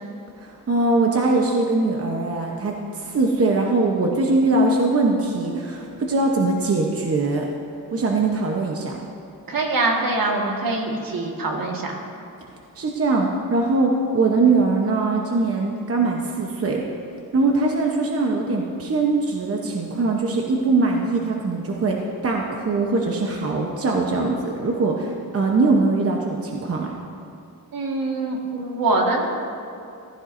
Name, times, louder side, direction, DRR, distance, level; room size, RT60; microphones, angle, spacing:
voice 1, 0.4-7.5 7.9-9.0 12.8-16.8 17.3-26.9, right 3 dB, 40° right, 0 dB, 0.9 m, -21 dB
voice 2, 9.5-12.0 27.7-29.3, right 2 dB, 70° right, 0 dB, 1.7 m, -24 dB
15.0 x 14.5 x 2.6 m, 2.6 s
wide cardioid pair, 160°, 35 cm